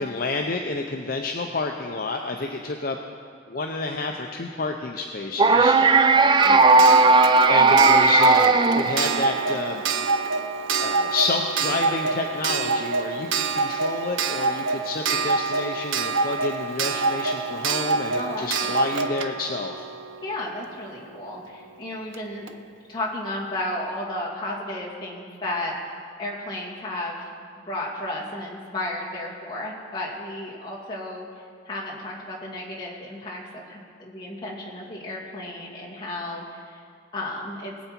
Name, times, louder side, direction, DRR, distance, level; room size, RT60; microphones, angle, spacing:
voice 1, 0.0-3.0 3.5-5.8 7.5-9.8 10.8-19.9, left 3 dB, 50° left, 2 dB, 0.6 m, -29 dB
sound 1, 5.4-9.6, right 3 dB, 25° right, 0.4 m, -16 dB
voice 2, 6.4-6.9 7.5-7.7 18.1-19.2 20.2-22.5 22.9-25.8 26.2-27.2 27.7-31.3 31.7-36.8 37.1-37.7, left 1 dB, 25° left, -6 dB, 2.5 m, -33 dB
Clock, 6.4-21.0 22.1-22.2 22.5-22.6, right 4 dB, 90° right, 0.6 m, -27 dB
20.5 x 8.1 x 4.4 m, 2.2 s
head